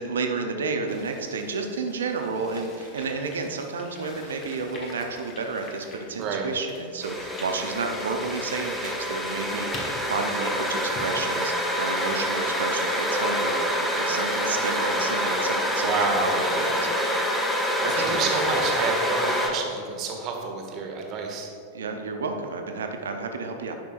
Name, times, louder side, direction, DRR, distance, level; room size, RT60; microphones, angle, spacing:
voice 1, 0.0-17.1 17.6-18.3 21.7-23.7, right 4 dB, 65° right, 4 dB, 0.7 m, -31 dB
sound 1, 0.9-18.9, left 2 dB, 30° left, 1.3 m, -45 dB
sound 2, 7.0-19.5, equal, 5° left, 0.9 m, -27 dB
Organ, 7.1-11.6, equal, 20° right, 1.6 m, -40 dB
voice 2, 15.8-16.8 17.8-21.5, right 4 dB, 35° right, 2 dB, 1.1 m, -29 dB
10.0 x 6.1 x 2.5 m, 2.3 s
figure-of-eight pair, 90°, 0 cm